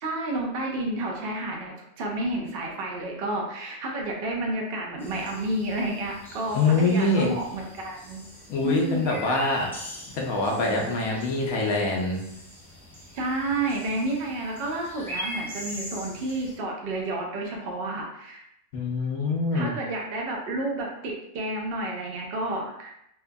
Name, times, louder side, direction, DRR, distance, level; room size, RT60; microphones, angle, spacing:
voice 1, 0.0-8.2 8.6-9.0 13.1-18.4 19.5-22.9, right 2 dB, 55° right, -1 dB, 0.7 m, -30 dB
sound 1, 5.0-16.6, equal, ahead, 0.6 m, -42 dB
voice 2, 6.5-7.3 8.5-9.7 10.1-12.2 18.7-19.7, left 3 dB, 70° left, -1 dB, 1.1 m, -24 dB
3.4 x 2.9 x 2.2 m, 0.79 s
omnidirectional pair, 1.6 m